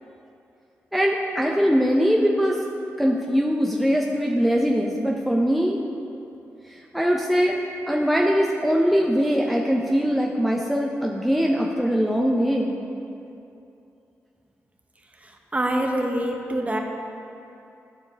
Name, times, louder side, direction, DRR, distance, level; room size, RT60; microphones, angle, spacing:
voice 1, 0.9-2.6 3.0-5.8 6.7-12.7, equal, ahead, -1 dB, 0.6 m, -22 dB
voice 2, 15.2-16.8, right 1 dB, 25° right, 2 dB, 1.0 m, -25 dB
11.5 x 4.7 x 3.4 m, 2.8 s
supercardioid pair, 45°, 6 cm